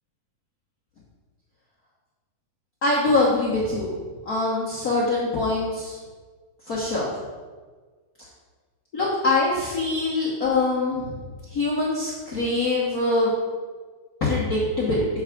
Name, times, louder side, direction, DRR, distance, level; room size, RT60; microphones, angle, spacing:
voice 1, 2.8-3.9 4.3-6.0 6.7-7.1 8.9-11.1 11.5-13.3 14.2-15.1, left 2 dB, 75° left, -6 dB, 0.8 m, -23 dB
7.2 x 4.6 x 5.8 m, 1.4 s
omnidirectional pair, 3.4 m